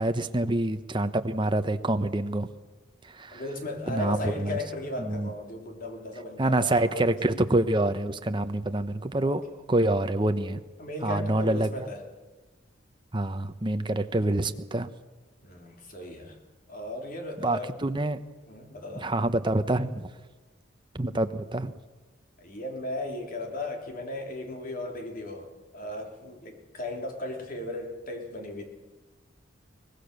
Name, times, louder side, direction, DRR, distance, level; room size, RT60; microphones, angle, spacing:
voice 1, 0.0-2.5 3.1-3.4 3.9-4.6 5.0-5.3 6.4-9.4 9.7-10.6 11.0-11.7 13.1-14.9 17.4-18.2 19.0-20.1 20.9-21.7, right 1 dB, 25° right, 9 dB, 0.9 m, -26 dB
voice 2, 3.3-7.2 9.2-9.4 10.8-12.0 15.4-16.4 16.7-17.7 18.5-19.1 22.4-28.6, left 1 dB, 45° left, 3 dB, 3.2 m, -36 dB
23.0 x 18.5 x 6.7 m, 1.2 s
head